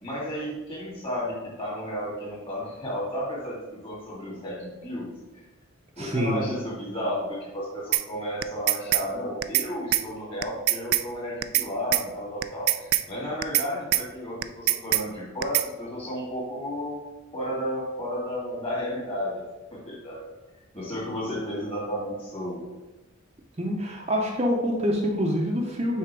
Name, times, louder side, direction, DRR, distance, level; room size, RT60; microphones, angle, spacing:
voice 1, 0.0-5.1 6.0-17.0 17.3-19.4 19.7-20.2 20.7-22.6, equal, 25° left, -4 dB, 2.0 m, -33 dB
voice 2, 6.0-6.5 23.6-26.0, equal, 30° right, 0 dB, 0.6 m, -26 dB
sound 1, 7.9-8.0 8.4-9.0 9.4-9.7 9.9-10.0 10.4-11.0 11.4-11.7 11.9-12.0 12.4-13.0 13.4-13.7 13.9-14.0 14.4-15.0 15.4-15.7, right 15 dB, 85° right, 0.3 m, -23 dB
6.0 x 3.8 x 4.6 m, 1.1 s
head